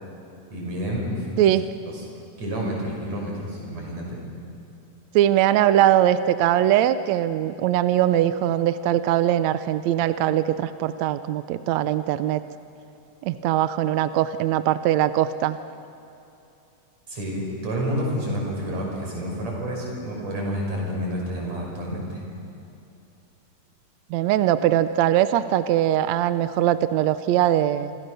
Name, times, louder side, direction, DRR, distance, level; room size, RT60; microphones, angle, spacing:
voice 1, 0.5-1.4 1.9-2.0 2.4-4.2 17.1-22.2, equal, 50° right, -2 dB, 7.3 m, -29 dB
voice 2, 5.1-12.4 13.2-15.6 24.1-28.0, right 12 dB, 75° right, 12 dB, 1.6 m, -21 dB
27.5 x 25.5 x 6.8 m, 2.8 s
omnidirectional pair, 3.8 m